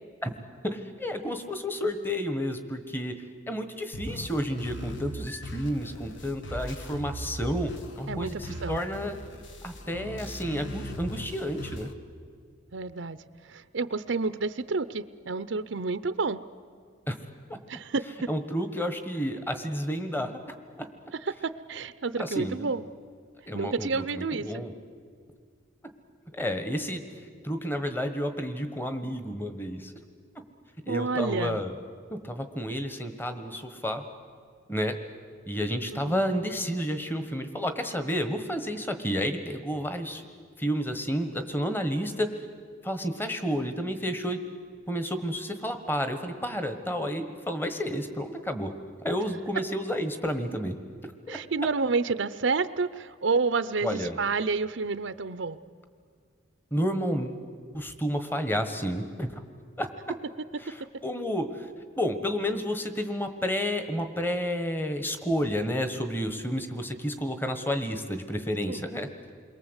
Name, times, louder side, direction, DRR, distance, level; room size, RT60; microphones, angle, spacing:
voice 1, 0.6-3.2 3.5-9.2 9.6-11.9 17.1-17.2 17.5-17.6 18.3-20.3 20.8-20.9 22.2-22.7 23.5-24.7 26.3-27.0 27.4-29.9 30.9-31.7 32.1-34.0 34.7-35.0 35.5-40.2 40.6-42.3 42.8-44.4 44.9-48.7 49.0-50.8 51.0-51.4 53.8-54.2 56.7-57.4 57.7-59.4 59.8-59.9 60.6-61.7 61.9-69.1, equal, 10° left, 8 dB, 1.3 m, -31 dB
sound 1, 3.9-11.9, equal, 70° left, 1.6 m, -39 dB
voice 2, 8.1-8.8 12.7-13.2 13.5-16.4 17.7-18.3 21.2-22.8 23.5-24.6 30.9-31.6 36.1-36.2 51.3-55.6 60.6-60.7 68.7-68.8, right 4 dB, 70° right, 13 dB, 0.6 m, -29 dB
28.5 x 22.5 x 8.1 m, 2.1 s
head